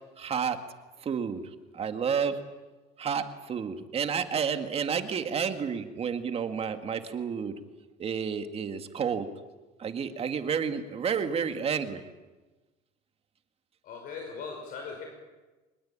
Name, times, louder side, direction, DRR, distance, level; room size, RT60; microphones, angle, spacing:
voice 1, 0.2-0.6 1.0-1.4 1.7-2.4 3.0-7.5 8.0-9.3 9.8-12.0, right 7 dB, 40° right, 8 dB, 2.2 m, -30 dB
voice 2, 13.8-15.1, left 5 dB, 60° left, 2 dB, 5.4 m, -39 dB
25.0 x 21.0 x 8.9 m, 1.2 s
cardioid pair, 120°, 16 cm